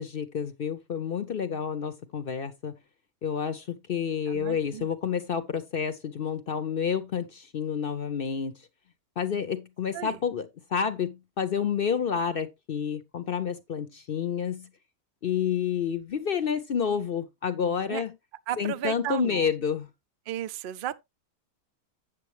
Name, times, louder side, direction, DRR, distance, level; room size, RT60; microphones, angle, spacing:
voice 1, 0.0-2.8 3.2-8.6 9.2-14.7 15.2-18.1 18.6-19.9, left 7 dB, 55° left, 0.6 m, -29 dB
voice 2, 4.3-4.9 9.9-10.2 17.9-18.0 18.5-19.5 20.3-21.0, right 11 dB, 75° right, 0.5 m, -34 dB
8.3 x 7.7 x 3.2 m
omnidirectional pair, 1.6 m